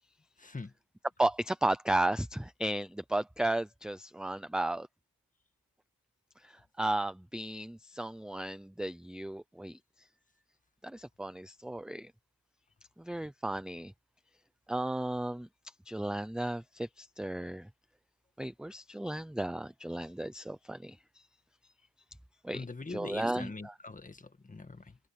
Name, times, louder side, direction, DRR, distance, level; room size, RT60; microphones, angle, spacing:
voice 1, 0.4-0.7 22.5-25.0, left 3 dB, 25° left, 1.7 m, -43 dB
voice 2, 1.2-4.9 6.4-10.1 10.8-12.1 13.0-13.9 14.7-15.5 15.9-17.7 18.4-21.2 22.4-23.7, right 1 dB, ahead, 0.6 m, -34 dB
wide cardioid pair, 125°, 32 cm